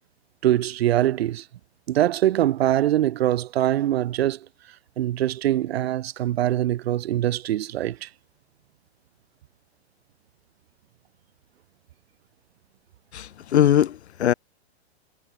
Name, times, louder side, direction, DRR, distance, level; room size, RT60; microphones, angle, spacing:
voice 1, 0.4-1.4 1.9-4.5 5.0-8.1, right 13 dB, 65° right, 4.5 m, -23 dB
voice 2, 13.1-14.3, left 10 dB, 75° left, 2.7 m, -21 dB
hypercardioid pair, 135°, 33 cm